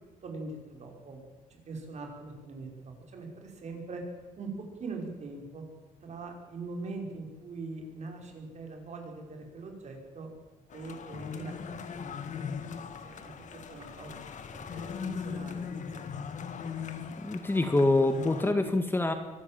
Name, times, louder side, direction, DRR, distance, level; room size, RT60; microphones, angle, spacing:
voice 1, 0.2-1.2 1.5-4.0 4.4-4.5 4.8-5.6 6.0-10.3 10.7-11.5 11.9-12.1 13.0-14.2 14.5-16.1, right 3 dB, 55° right, 2 dB, 5.3 m, -42 dB
sound 1, 10.7-18.5, left 6 dB, 60° left, 1.8 m, -39 dB
voice 2, 17.2-19.1, left 2 dB, 15° left, 7 dB, 1.8 m, -25 dB
23.5 x 13.5 x 9.1 m, 1.2 s
cardioid pair, 125°, 14 cm